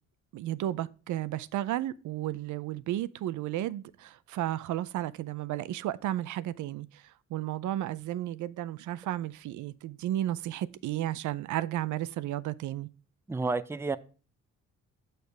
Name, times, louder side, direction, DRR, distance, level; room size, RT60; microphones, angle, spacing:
voice 1, 0.3-12.9, right 13 dB, 75° right, 0.5 m, -33 dB
voice 2, 13.3-14.0, right 3 dB, 10° right, 0.4 m, -30 dB
6.6 x 6.5 x 3.3 m
cardioid pair, 90°, 30 cm